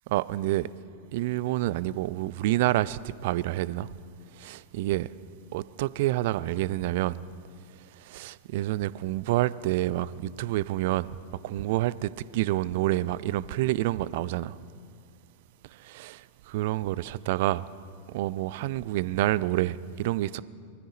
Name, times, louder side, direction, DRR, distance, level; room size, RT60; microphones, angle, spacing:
voice 1, 0.1-0.7 1.1-3.9 4.3-5.1 5.5-7.2 8.0-11.1 11.4-14.6 15.7-17.6 18.1-20.4, right 15 dB, 50° right, 0.4 m, -28 dB
21.5 x 15.0 x 4.0 m
figure-of-eight pair, 90°, 0 cm